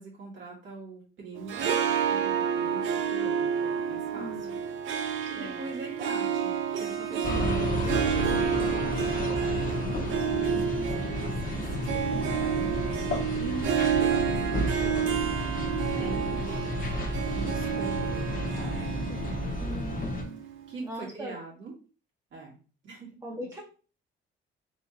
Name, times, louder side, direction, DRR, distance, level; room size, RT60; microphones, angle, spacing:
voice 1, 0.0-4.5 4.8-15.1 16.0-20.1 20.7-21.7 22.3-22.5 22.8-23.5, right 3 dB, 70° right, -3 dB, 2.3 m, -43 dB
Harp, 1.4-20.7, right 8 dB, 85° right, 0.6 m, -30 dB
voice 2, 4.2-4.6 5.4-5.6 15.8-16.6 19.6-20.4 20.8-21.3 23.2-23.6, equal, 15° right, -2 dB, 1.2 m, -40 dB
sound 1, 7.2-20.2, left 1 dB, 45° left, 1.2 m, -32 dB
4.2 x 3.7 x 2.8 m, 0.37 s
cardioid pair, 90°, 20 cm